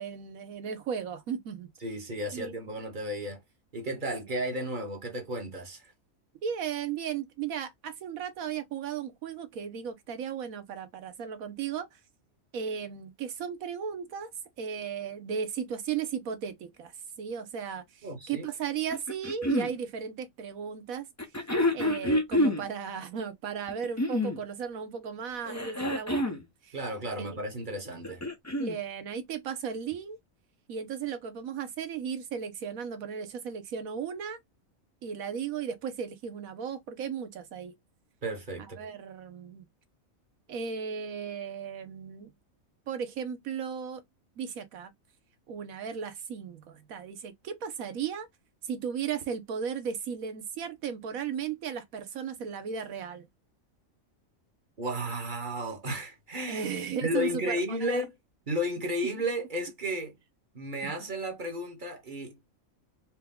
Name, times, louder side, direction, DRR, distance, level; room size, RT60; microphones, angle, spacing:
voice 1, 0.0-1.7 2.3-2.6 6.4-12.0 12.5-14.3 14.6-16.9 17.2-21.1 21.7-26.4 26.6-26.8 27.2-27.4 28.6-30.2 30.7-34.4 35.0-37.7 38.8-39.7 40.5-42.3 42.9-44.0 44.4-44.9 45.5-48.3 48.6-53.3 56.5-58.0 60.8-60.9, right 7 dB, 85° right, 1.3 m, -35 dB
voice 2, 1.8-3.4 3.7-5.9 18.0-18.5 26.7-28.3 38.2-38.8 54.8-56.7 57.0-58.1 58.5-60.2 60.5-62.4, equal, 35° right, 1.3 m, -33 dB
sound 1, 18.9-19.7 21.2-22.6 23.7-24.4 25.4-26.4 27.9-28.8 29.9-30.0, left 1 dB, 15° left, 0.8 m, -28 dB
4.6 x 2.3 x 3.6 m
omnidirectional pair, 1.4 m